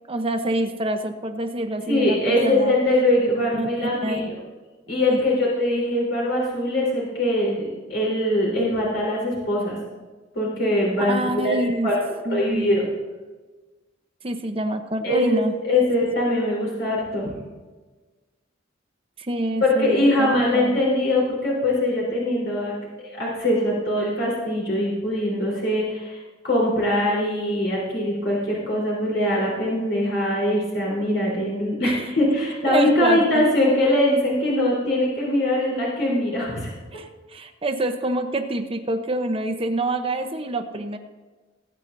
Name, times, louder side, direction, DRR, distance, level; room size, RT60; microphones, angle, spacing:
voice 1, 0.1-2.7 3.5-4.3 5.1-5.2 11.0-11.9 12.3-12.8 14.2-15.8 19.2-20.8 31.8-32.1 32.7-33.4 36.9-41.0, right 1 dB, 30° right, 5 dB, 0.9 m, -27 dB
voice 2, 1.9-4.4 4.9-9.8 10.3-11.9 12.3-12.9 15.0-15.4 15.6-17.3 19.6-36.7, left 1 dB, 65° left, -5 dB, 4.1 m, -22 dB
20.5 x 8.9 x 2.7 m, 1.3 s
head